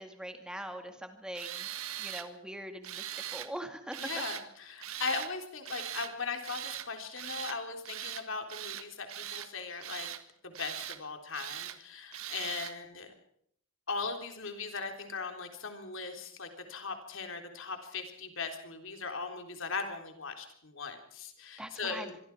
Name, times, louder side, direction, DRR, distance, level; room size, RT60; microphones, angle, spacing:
voice 1, 0.0-1.7 2.0-4.0 21.6-22.2, right 1 dB, 5° right, 6 dB, 2.3 m, -42 dB
Tools, 1.3-2.3 2.8-3.5 3.9-4.4 4.8-5.3 5.6-6.1 6.4-6.9 7.2-7.6 7.9-8.2 8.5-9.5 9.8-10.2 10.5-11.0 11.3-11.8 12.1-12.7, right 11 dB, 75° right, 1.7 m, -40 dB
voice 2, 4.0-10.1 10.4-13.1 13.9-22.2, left 4 dB, 60° left, 5 dB, 3.7 m, -39 dB
25.0 x 23.5 x 4.7 m, 0.68 s
head